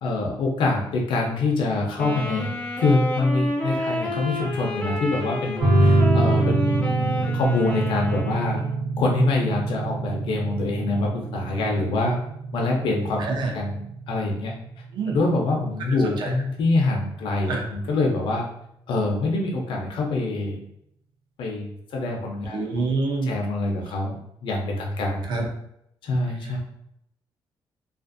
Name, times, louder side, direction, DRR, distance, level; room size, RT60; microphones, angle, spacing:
voice 1, 0.0-2.5 2.8-8.6 9.0-12.2 12.5-13.3 13.5-13.8 14.1-14.5 15.1-18.4 18.9-20.6 21.4-22.6 23.3-25.2 26.0-26.6, left 2 dB, 65° left, -1 dB, 0.6 m, -25 dB
Wind instrument woodwind instrument, 1.9-8.9, equal, 10° left, 0.3 m, -30 dB
sound 1, 5.6-16.6, right 2 dB, 85° right, 0.9 m, -25 dB
voice 2, 13.2-13.5 14.9-15.2 16.2-16.3 17.5-17.7 22.5-23.3 25.3-25.5, right 3 dB, 55° right, 1 dB, 0.6 m, -26 dB
2.5 x 2.5 x 2.5 m, 0.76 s
cardioid pair, 165°, 9 cm